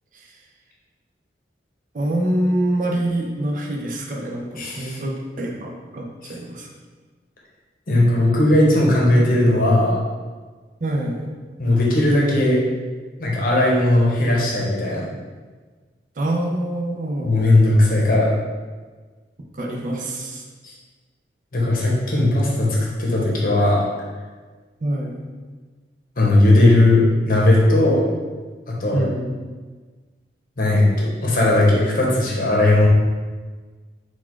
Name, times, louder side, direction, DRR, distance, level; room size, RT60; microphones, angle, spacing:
voice 1, 1.9-6.7 10.8-11.3 16.2-17.4 19.4-20.4 24.8-25.2 28.9-29.3, right 1 dB, 45° right, 0 dB, 0.5 m, -25 dB
voice 2, 4.5-5.0 7.9-10.0 11.6-12.6 13.2-15.1 17.2-18.3 20.6-20.7 21.5-23.8 26.2-28.0 28.7-29.0 30.6-32.9, left 1 dB, 50° left, -3 dB, 0.8 m, -17 dB
4.1 x 2.3 x 4.4 m, 1.4 s
head